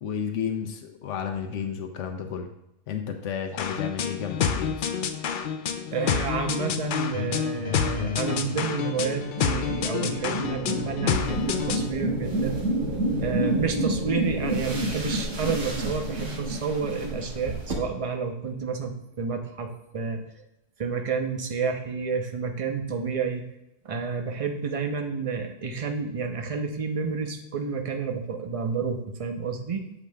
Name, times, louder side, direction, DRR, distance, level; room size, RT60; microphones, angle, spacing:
voice 1, 0.0-2.5 2.9-4.9, left 7 dB, 85° left, 5 dB, 1.0 m, -32 dB
sound 1, 3.6-11.9, left 7 dB, 55° left, 0.6 m, -28 dB
voice 2, 5.9-12.6 13.2-20.2 20.8-23.5 23.8-29.8, right 5 dB, 35° right, 4 dB, 0.7 m, -30 dB
sound 2, 8.2-18.0, right 1 dB, 25° left, 1.6 m, -30 dB
sound 3, 11.1-17.7, right 2 dB, 80° right, 1.7 m, -38 dB
8.2 x 7.1 x 2.3 m, 0.89 s
omnidirectional pair, 1.2 m